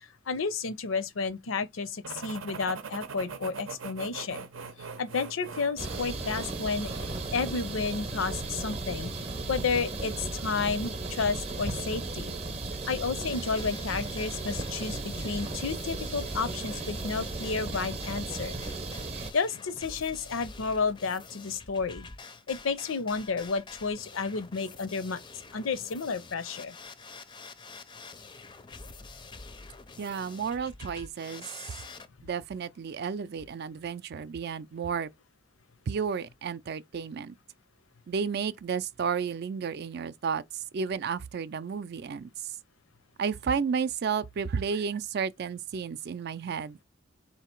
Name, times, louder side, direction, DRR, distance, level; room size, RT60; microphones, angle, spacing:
voice 1, 0.3-4.5 5.0-6.9 7.3-9.1 9.5-12.4 12.9-18.6 19.3-22.1 22.5-25.2 25.5-26.8, left 4 dB, 80° left, 0.6 m, -31 dB
sound 1, 2.0-7.9, right 5 dB, 85° right, 0.7 m, -42 dB
sound 2, 5.8-19.3, right 2 dB, 30° right, 0.7 m, -35 dB
sound 3, 13.3-32.1, left 4 dB, 25° left, 0.4 m, -48 dB
voice 2, 30.0-31.5 32.2-35.1 35.9-37.3 38.1-42.3 43.2-46.8, right 6 dB, 55° right, 0.4 m, -32 dB
3.7 x 2.8 x 4.4 m
head